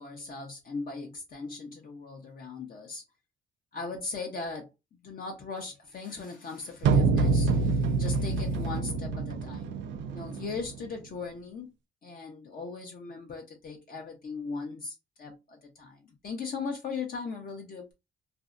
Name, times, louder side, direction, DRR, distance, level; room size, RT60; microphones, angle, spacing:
voice 1, 0.0-3.0 3.7-4.7 5.0-9.8 10.1-11.7 12.0-17.9, left 4 dB, 45° left, 0.7 m, -39 dB
sound 1, 6.8-10.9, right 4 dB, 70° right, 0.4 m, -26 dB
2.6 x 2.1 x 2.4 m
cardioid pair, 90°, 20 cm